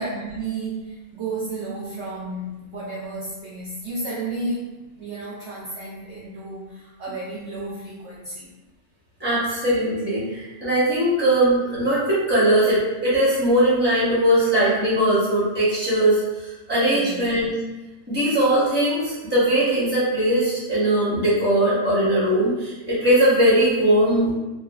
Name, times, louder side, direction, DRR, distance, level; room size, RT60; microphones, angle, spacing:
voice 1, 0.0-4.6 5.0-8.6 16.9-17.3, right 2 dB, 70° right, -5 dB, 0.6 m, -32 dB
voice 2, 9.2-17.5 18.1-24.3, right 1 dB, 10° right, -10 dB, 0.9 m, -20 dB
2.9 x 2.4 x 2.3 m, 1.1 s
omnidirectional pair, 1.6 m